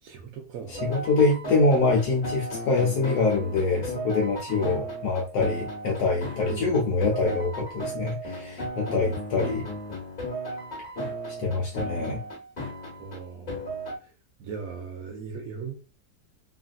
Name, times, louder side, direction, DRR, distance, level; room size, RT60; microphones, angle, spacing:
voice 1, 0.0-0.8 4.5-4.8 6.5-7.5 13.0-13.7 14.0-14.1 14.4-15.7, right 5 dB, 65° right, 0.9 m, -38 dB
voice 2, 0.7-9.6 11.4-12.2, left 3 dB, 80° left, 1.2 m, -25 dB
sound 1, 0.7-14.0, right 1 dB, 35° left, 1.5 m, -35 dB
3.0 x 2.5 x 2.3 m
omnidirectional pair, 1.7 m